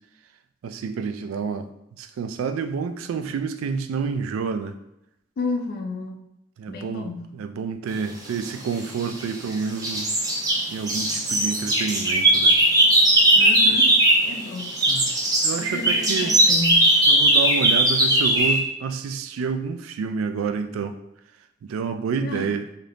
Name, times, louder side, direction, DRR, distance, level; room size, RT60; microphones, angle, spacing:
voice 1, 0.6-1.7 2.0-4.8 6.6-10.1 10.7-12.5 14.9-15.1 15.4-16.3 17.1-21.0 21.7-22.7, right 5 dB, 90° right, 10 dB, 0.3 m, -29 dB
voice 2, 5.4-6.2 6.7-7.3 13.3-14.8 15.6-16.9 22.2-22.6, left 2 dB, 50° left, 4 dB, 0.3 m, -31 dB
sound 1, 8.7-9.5 9.8-14.3 14.6-18.6, right 1 dB, 20° right, 0.5 m, -19 dB
2.7 x 2.4 x 3.3 m, 0.85 s
head